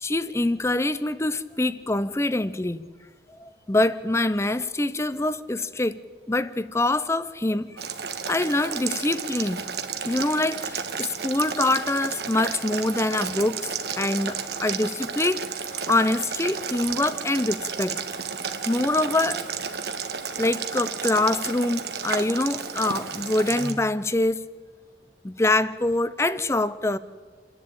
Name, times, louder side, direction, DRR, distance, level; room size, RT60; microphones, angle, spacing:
voice 1, 0.0-2.9 3.4-6.0 6.3-7.7 8.3-9.7 10.1-18.0 18.7-19.4 20.4-24.4 25.2-27.0, left 2 dB, 15° left, 0.6 m, -25 dB
Boiling, 7.8-23.7, right 6 dB, 65° right, 1.4 m, -32 dB
28.5 x 11.0 x 8.8 m
head